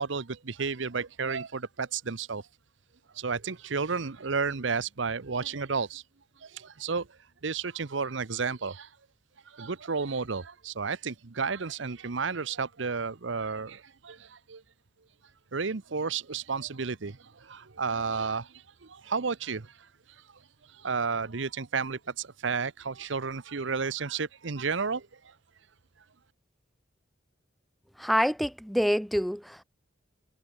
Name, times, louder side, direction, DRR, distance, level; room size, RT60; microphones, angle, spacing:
voice 1, 0.0-2.4 3.1-6.0 6.4-7.1 7.4-8.9 9.5-14.6 15.5-18.5 18.8-19.7 20.7-25.3, right 5 dB, 70° right, 0.9 m, -32 dB
voice 2, 28.0-29.6, equal, ahead, 0.4 m, -26 dB
head